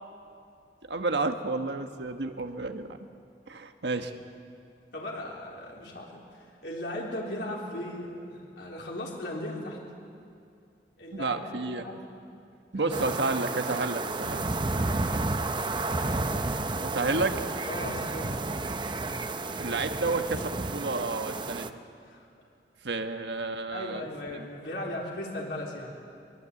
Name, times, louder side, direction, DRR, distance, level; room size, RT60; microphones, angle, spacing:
voice 1, 0.9-3.0 3.5-4.2 11.1-11.8 12.7-14.5 16.8-17.4 19.6-21.7 22.8-24.1 24.3-24.5, right 3 dB, 80° right, 6 dB, 1.5 m, -31 dB
voice 2, 4.9-9.8 11.0-12.0 12.7-13.2 17.7-18.4 22.1-22.3 23.7-26.0, left 1 dB, 75° left, -3 dB, 3.8 m, -37 dB
sound 1, 12.9-21.7, right 2 dB, 25° right, 0.7 m, -31 dB
22.5 x 22.0 x 8.4 m, 2.4 s
head